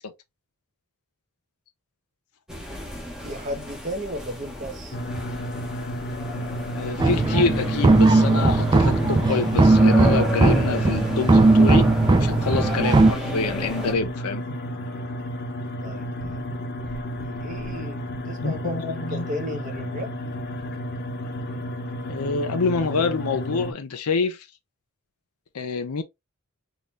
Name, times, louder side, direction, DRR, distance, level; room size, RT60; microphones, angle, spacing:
sound 1, 2.5-13.9, left 1 dB, 5° right, 0.9 m, -34 dB
voice 1, 3.2-5.0 15.8-16.5 17.1-18.8 19.1-20.1, equal, 35° right, 1.0 m, -34 dB
sound 2, 4.9-23.7, equal, 50° left, 0.9 m, -32 dB
voice 2, 6.8-11.9 12.2-14.4 18.4-19.3 22.1-24.5 25.5-26.0, left 4 dB, 90° left, 0.7 m, -26 dB
sound 3, 7.0-13.1, right 2 dB, 20° right, 0.3 m, -18 dB
3.8 x 2.8 x 3.1 m
head